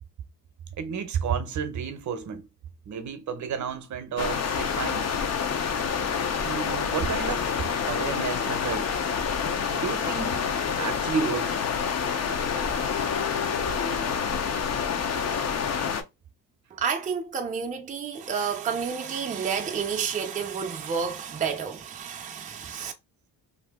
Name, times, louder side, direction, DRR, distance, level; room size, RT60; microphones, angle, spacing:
voice 1, 0.8-2.5 2.9-5.1 6.4-7.5 7.9-8.9 9.7-10.3 10.8-11.6, right 6 dB, 50° right, 0.7 m, -31 dB
sound 1, 4.2-16.0, left 6 dB, 45° left, 0.6 m, -27 dB
voice 2, 16.7-22.9, right 6 dB, 20° right, 0.4 m, -30 dB
2.6 x 2.4 x 3.5 m
cardioid pair, 115°, 37 cm